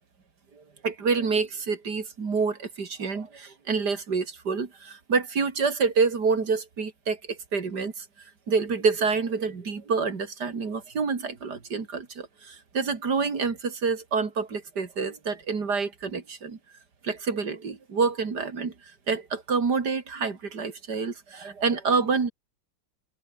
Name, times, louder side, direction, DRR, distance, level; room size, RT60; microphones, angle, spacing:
voice 1, 0.6-8.0 8.5-16.6 17.0-18.7 19.1-22.3, right 5 dB, 50° right, 3.0 m, -27 dB
omnidirectional pair, 2.4 m